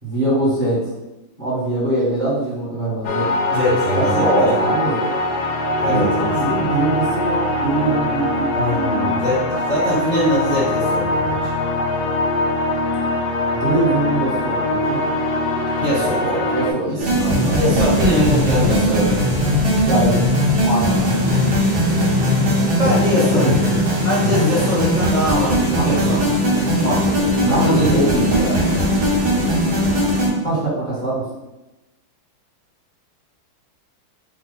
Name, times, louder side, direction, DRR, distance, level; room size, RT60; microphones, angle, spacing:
voice 1, 0.0-0.9 1.4-3.3 3.9-5.1 5.9-9.2 13.5-15.0 16.2-17.6 19.9-20.2 20.6-21.0 22.8-23.7 24.2-24.4 25.7-26.1 27.4-28.7 30.4-31.2, right 2 dB, 25° right, -8 dB, 1.2 m, -22 dB
sound 1, 3.0-16.7, left 1 dB, 75° left, 1.2 m, -22 dB
voice 2, 3.5-4.2 4.6-4.7 5.8-6.3 8.5-11.5 15.8-16.2 16.9-17.0 17.6-19.2 22.8-23.6 24.0-26.3 26.8-28.0, left 1 dB, 25° left, -8 dB, 0.9 m, -22 dB
sound 2, 17.0-30.3, equal, 65° right, 2.2 m, -18 dB
5.2 x 2.3 x 3.9 m, 0.98 s
omnidirectional pair, 2.4 m